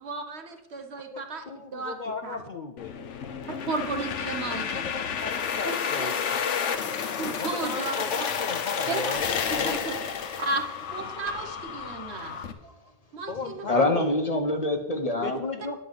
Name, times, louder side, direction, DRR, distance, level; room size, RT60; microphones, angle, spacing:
voice 1, 0.0-1.4 1.7-2.0 2.2-2.4 3.5-4.8 6.0-6.1 7.2-8.3 8.9-9.2 9.6-10.0 10.4-10.6 10.9-12.4 13.1-13.8, right 3 dB, 65° right, 5 dB, 1.4 m, -33 dB
voice 2, 1.1-3.0 4.5-6.6 7.4-9.8 13.3-14.1 15.2-15.8, left 4 dB, 50° left, 7 dB, 0.6 m, -36 dB
sound 1, 2.8-12.5, left 7 dB, 80° left, 1.2 m, -31 dB
voice 3, 13.4-15.4, left 2 dB, 35° left, 5 dB, 1.0 m, -25 dB
9.8 x 5.3 x 7.6 m, 0.99 s
omnidirectional pair, 1.2 m